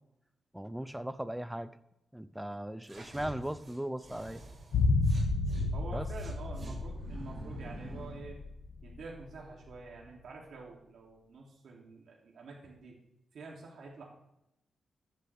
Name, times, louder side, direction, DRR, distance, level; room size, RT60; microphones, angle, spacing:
voice 1, 0.5-1.7 2.1-4.4 5.9-6.1, right 1 dB, 5° right, 13 dB, 0.6 m, -38 dB
sound 1, 2.8-5.7 6.2-8.2, right 1 dB, 40° right, 3.5 m, -47 dB
sound 2, 4.7-9.0 9.2-9.3, left 3 dB, 85° left, 1.1 m, -31 dB
voice 2, 5.7-8.4 8.8-13.0 13.3-14.0, right 4 dB, 75° right, -2 dB, 2.9 m, -47 dB
15.0 x 10.0 x 3.6 m, 0.83 s
wide cardioid pair, 140°, 0 cm